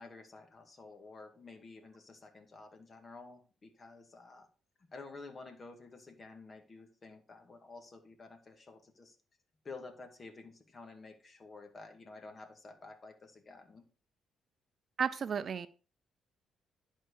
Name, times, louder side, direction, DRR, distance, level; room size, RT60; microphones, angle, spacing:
voice 1, 0.0-4.5 4.9-9.2 9.6-13.8, left 3 dB, 35° left, 6 dB, 2.0 m, -51 dB
voice 2, 15.0-15.7, right 7 dB, 50° right, 14 dB, 0.5 m, -33 dB
11.0 x 4.6 x 4.7 m, 0.36 s
cardioid pair, 90°, 0 cm